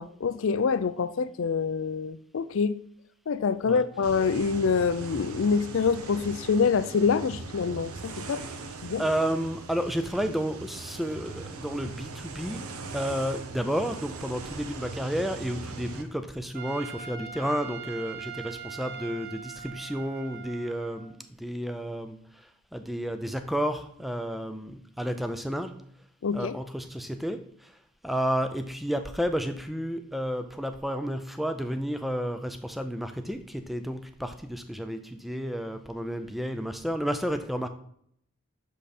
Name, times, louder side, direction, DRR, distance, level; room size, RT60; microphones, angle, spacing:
voice 1, 0.0-2.7 3.3-8.4 8.8-9.0 26.2-26.5, left 5 dB, 60° left, 14 dB, 0.4 m, -26 dB
sound 1, 4.0-16.0, right 3 dB, 80° right, 0.8 m, -40 dB
voice 2, 9.0-25.9 26.3-27.7 28.0-37.7, equal, ahead, 8 dB, 0.4 m, -31 dB
Trumpet, 16.5-21.1, right 8 dB, 50° right, 0.6 m, -41 dB
6.3 x 5.5 x 4.2 m, 0.68 s
head